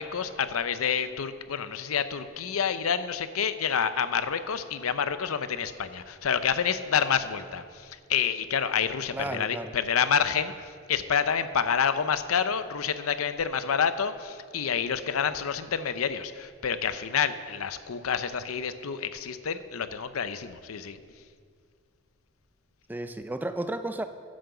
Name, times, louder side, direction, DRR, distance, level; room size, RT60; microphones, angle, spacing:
voice 1, 0.0-21.0, left 7 dB, 85° left, 12 dB, 0.6 m, -28 dB
voice 2, 9.1-9.7 22.9-24.0, right 1 dB, 10° right, 10 dB, 0.3 m, -33 dB
10.5 x 7.6 x 7.0 m, 2.1 s
head